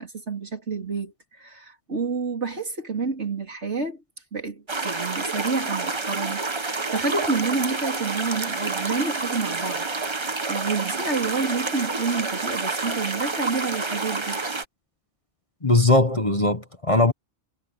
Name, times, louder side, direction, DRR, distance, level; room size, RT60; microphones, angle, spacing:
voice 1, 0.0-4.0 4.3-14.4, right 4 dB, 75° right, 4.0 m, -29 dB
sound 1, 4.7-14.6, right 3 dB, 25° right, 1.1 m, -28 dB
voice 2, 15.6-17.1, left 2 dB, 30° left, 1.4 m, -19 dB
omnidirectional pair, 1.2 m